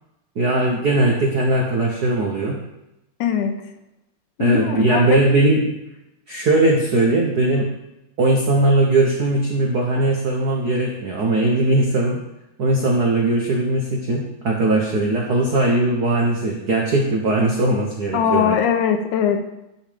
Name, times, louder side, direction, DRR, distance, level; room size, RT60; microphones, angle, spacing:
voice 1, 0.3-2.6 4.4-5.6 6.3-7.7 8.2-12.2 12.6-18.6, right 2 dB, 85° right, -1 dB, 0.8 m, -19 dB
voice 2, 3.2-3.6 4.4-5.2 18.1-19.5, left 8 dB, 85° left, 6 dB, 2.3 m, -20 dB
11.5 x 5.5 x 5.1 m, 0.89 s
omnidirectional pair, 3.5 m